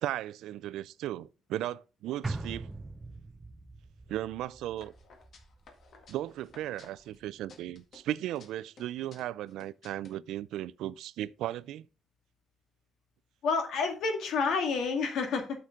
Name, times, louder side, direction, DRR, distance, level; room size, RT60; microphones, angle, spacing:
voice 1, 0.0-2.7 4.1-4.9 6.1-11.9, right 13 dB, 85° right, 0.3 m, -36 dB
sound 1, 2.2-6.7 7.0-7.1, right 3 dB, 20° right, 0.6 m, -42 dB
sound 2, 4.8-7.2 7.5-8.5 8.8-10.1, left 4 dB, 60° left, 1.8 m, -56 dB
voice 2, 13.4-15.6, left 4 dB, 75° left, 1.8 m, -29 dB
8.4 x 6.5 x 3.7 m
cardioid pair, 90°, 0 cm